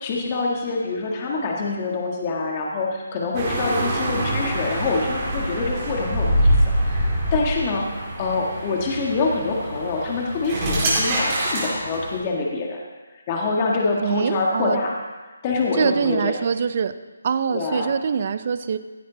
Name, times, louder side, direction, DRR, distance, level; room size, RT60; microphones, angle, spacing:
voice 1, 0.0-12.8 13.1-14.9 15.4-16.3 17.5-17.9, left 3 dB, 30° left, -1 dB, 1.6 m, -25 dB
sound 1, 3.3-12.2, right 1 dB, 30° right, 4.5 m, -24 dB
voice 2, 14.0-14.8 15.8-16.9 17.2-18.8, right 6 dB, 45° right, 12 dB, 0.6 m, -23 dB
16.0 x 9.3 x 3.9 m, 1.3 s
figure-of-eight pair, 155°, 0 cm